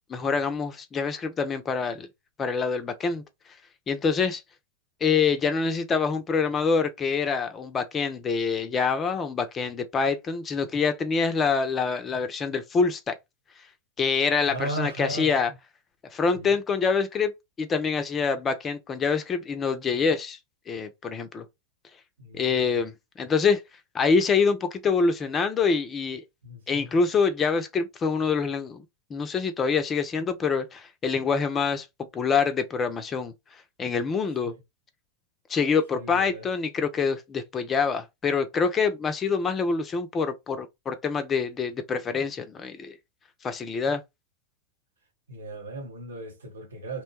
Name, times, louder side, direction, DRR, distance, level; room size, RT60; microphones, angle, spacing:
voice 1, 0.1-2.1 2.4-3.2 3.9-4.4 5.0-13.1 14.0-15.5 16.1-17.3 17.6-20.4 20.7-21.4 22.3-22.9 23.2-23.6 23.9-26.2 26.7-28.8 29.1-31.9 32.1-33.3 33.8-34.5 35.5-43.0 43.4-44.0, left 5 dB, 20° left, 0.5 m, -25 dB
voice 2, 14.5-15.4 16.3-16.5 22.2-22.8 26.4-26.9 34.4-34.6 35.9-36.5 45.3-47.0, right 1 dB, 70° right, 0.9 m, -36 dB
3.0 x 2.2 x 2.8 m
figure-of-eight pair, 90°, 0 cm